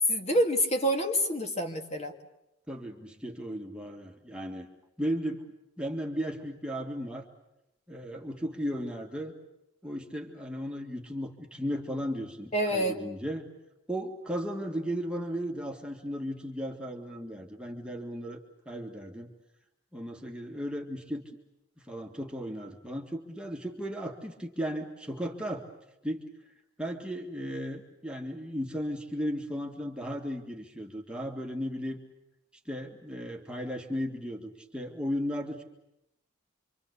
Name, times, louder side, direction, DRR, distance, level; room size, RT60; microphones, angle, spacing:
voice 1, 0.1-2.1 12.5-13.0, equal, 30° left, 4 dB, 2.2 m, -27 dB
voice 2, 2.7-4.7 5.0-5.4 5.8-7.2 7.9-9.3 9.8-13.5 13.9-18.4 18.7-19.3 19.9-21.2 21.8-25.7 26.0-26.3 26.8-32.0 32.7-35.6, equal, 5° right, 1 dB, 1.9 m, -35 dB
26.5 x 25.5 x 8.3 m, 0.88 s
head